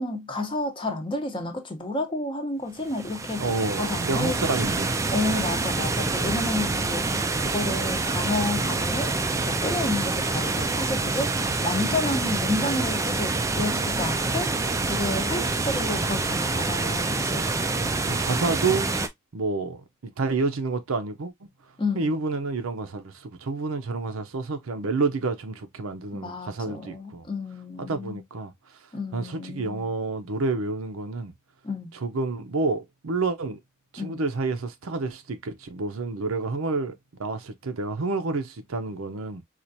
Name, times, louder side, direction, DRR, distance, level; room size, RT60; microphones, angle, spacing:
voice 1, 0.0-3.5 3.8-4.4 5.1-9.1 9.5-14.6 14.9-17.5 21.8-22.1 26.1-28.2 28.9-29.9 31.6-31.9 34.0-34.2, left 2 dB, 25° left, 0.7 m, -31 dB
sound 1, 2.8-19.1, right 3 dB, 15° right, 0.3 m, -26 dB
voice 2, 3.4-5.0 18.1-18.9 19.3-21.3 22.0-27.3 27.8-28.5 29.1-31.3 32.0-33.6 33.9-36.9 37.2-39.4, right 3 dB, 75° right, 0.6 m, -29 dB
4.4 x 2.4 x 2.5 m
head